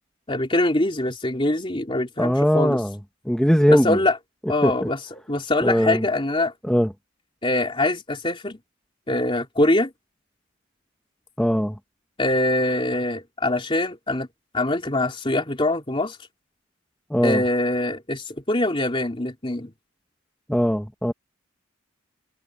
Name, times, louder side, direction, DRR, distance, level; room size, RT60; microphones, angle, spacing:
voice 1, 0.3-2.8 3.7-4.2 4.5-6.5 7.4-8.6 9.1-9.9 12.2-14.3 14.5-16.2 17.2-19.7, left 2 dB, 25° left, 3.4 m, -23 dB
voice 2, 2.2-3.0 3.3-4.0 4.6-4.9 5.6-6.1 6.6-6.9 11.4-11.8 17.1-17.4 20.5-21.1, equal, 5° left, 2.0 m, -20 dB
head